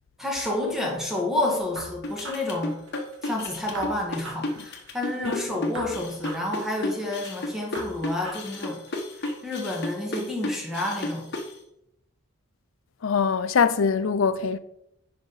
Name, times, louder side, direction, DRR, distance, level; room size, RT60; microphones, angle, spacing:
voice 1, 0.2-2.8 3.2-8.8 9.4-11.3, left 1 dB, ahead, 1.6 m, -29 dB
sound 1, 1.8-3.4 3.7-5.4 5.7-7.4 7.7-9.4, right 1 dB, 70° right, 1.7 m, -42 dB
sound 2, 2.0-11.5, left 2 dB, 55° left, 1.2 m, -32 dB
voice 2, 13.0-14.6, left 6 dB, 75° left, 0.5 m, -23 dB
10.5 x 4.9 x 4.0 m
head